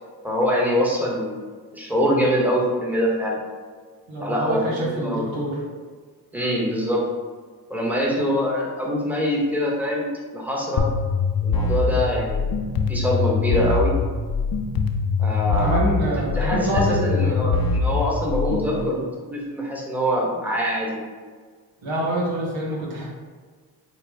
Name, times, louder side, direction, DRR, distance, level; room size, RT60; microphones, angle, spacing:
voice 1, 0.2-3.4 4.2-5.2 6.3-7.0 7.7-10.9 11.4-12.5 12.9-13.9 15.2-19.0 19.3-21.0, equal, 5° right, -3 dB, 1.2 m, -24 dB
voice 2, 4.1-5.6 15.4-17.5 18.7-19.0 21.8-23.1, right 1 dB, 80° right, -4 dB, 1.2 m, -26 dB
sound 1, 10.8-18.8, left 4 dB, 50° left, 0.6 m, -23 dB
4.8 x 2.2 x 3.5 m, 1.5 s
supercardioid pair, 50°, 45 cm